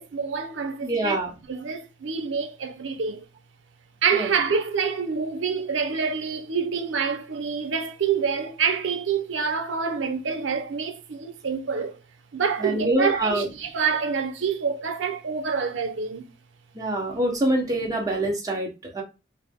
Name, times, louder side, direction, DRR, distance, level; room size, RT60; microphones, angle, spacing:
voice 1, 0.0-1.2 1.5-3.2 4.0-12.0 12.3-16.3, right 6 dB, 80° right, 0.6 m, -27 dB
voice 2, 0.8-1.3 4.1-4.3 12.6-13.5 16.7-19.0, right 1 dB, 20° right, 1.1 m, -25 dB
4.8 x 2.1 x 3.5 m
head